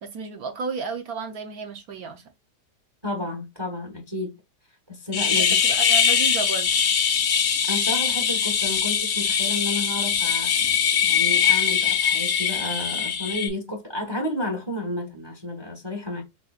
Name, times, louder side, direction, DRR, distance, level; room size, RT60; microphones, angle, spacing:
voice 1, 0.0-2.2 5.3-6.7, right 5 dB, 65° right, 1.2 m, -33 dB
voice 2, 3.0-4.3 4.9-5.6 7.6-10.5 11.0-16.2, left 1 dB, 20° right, 0.9 m, -31 dB
sound 1, 5.1-13.5, left 7 dB, 60° left, 0.8 m, -22 dB
4.1 x 4.1 x 2.4 m
omnidirectional pair, 1.8 m